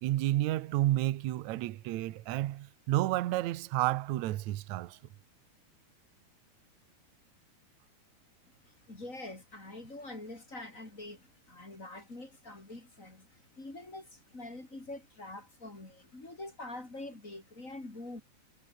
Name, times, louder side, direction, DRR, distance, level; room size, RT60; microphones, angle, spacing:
voice 1, 0.0-5.0, right 15 dB, 75° right, 1.8 m, -31 dB
voice 2, 8.7-18.2, left 2 dB, 20° left, 4.7 m, -45 dB
omnidirectional pair, 4.5 m